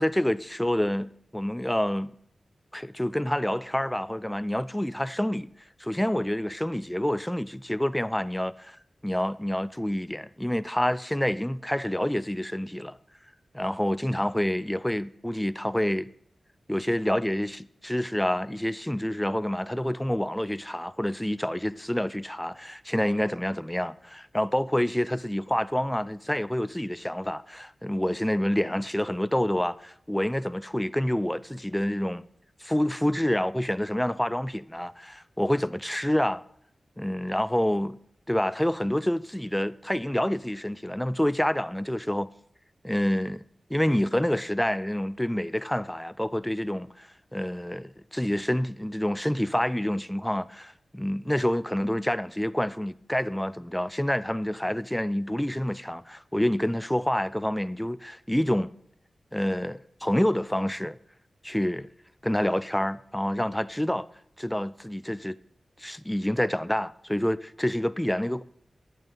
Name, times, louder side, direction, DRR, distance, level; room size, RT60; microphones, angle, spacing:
voice 1, 0.0-2.1 2.7-5.5 5.8-8.8 9.0-13.0 13.5-16.1 16.7-32.2 32.6-36.4 37.0-38.0 38.3-42.3 42.8-43.4 43.7-58.7 59.3-61.0 61.4-61.9 62.2-64.1 64.4-65.4 65.8-68.4, left 1 dB, 5° left, 0.5 m, -28 dB
12.0 x 10.5 x 3.9 m
wide cardioid pair, 85°, 0 cm